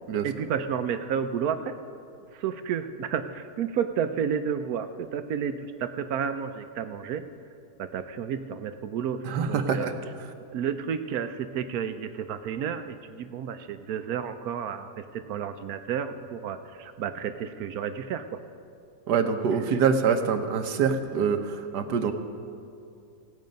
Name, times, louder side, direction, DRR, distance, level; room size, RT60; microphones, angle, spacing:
voice 1, 0.2-1.7 2.3-7.2 7.8-9.9 10.5-18.4, right 7 dB, 70° right, 10 dB, 1.1 m, -31 dB
voice 2, 9.2-9.9 19.1-22.1, right 6 dB, 90° right, 7 dB, 1.4 m, -25 dB
18.0 x 8.4 x 5.2 m, 2.5 s
omnidirectional pair, 1.7 m